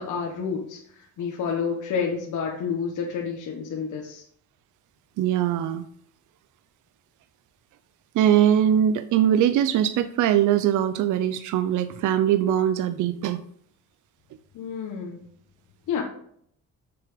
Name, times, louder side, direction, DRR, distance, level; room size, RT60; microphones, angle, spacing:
voice 1, 0.0-4.2 14.5-15.2 15.9-16.0, left 6 dB, 80° left, 0 dB, 1.4 m, -29 dB
voice 2, 5.2-5.8 8.1-13.4, right 10 dB, 80° right, 12 dB, 0.6 m, -21 dB
7.0 x 6.9 x 5.0 m, 0.65 s
cardioid pair, 90°, 30 cm